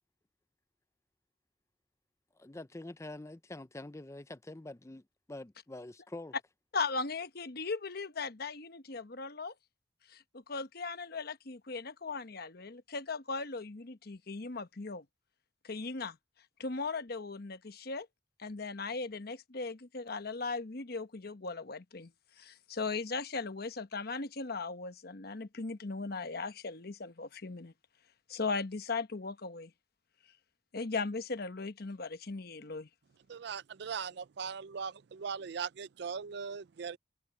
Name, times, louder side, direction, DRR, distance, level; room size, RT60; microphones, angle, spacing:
voice 1, 2.4-6.3, left 2 dB, 15° left, 0.6 m, -46 dB
voice 2, 6.7-9.5 10.1-15.0 15.6-16.2 16.6-18.1 18.4-22.1 22.4-27.7 28.3-29.7 30.7-32.9, left 4 dB, 55° left, 1.1 m, -38 dB
voice 3, 33.3-37.0, right 6 dB, 65° right, 0.4 m, -39 dB
head